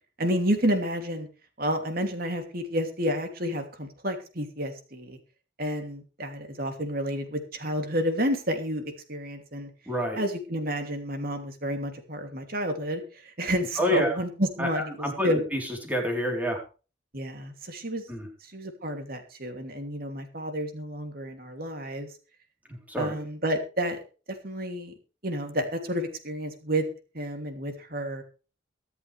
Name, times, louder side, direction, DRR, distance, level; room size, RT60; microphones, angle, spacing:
voice 1, 0.2-1.3 1.6-5.2 5.6-9.7 10.2-15.4 17.1-18.1 18.4-22.1 23.0-24.0 24.4-24.9 25.2-26.9 27.1-28.2, equal, 50° right, 5 dB, 2.9 m, -30 dB
voice 2, 9.9-10.2 13.8-14.2 14.6-16.6 18.1-18.3 22.7-23.2, equal, 10° right, 1 dB, 4.0 m, -28 dB
23.5 x 8.1 x 3.4 m, 0.35 s
head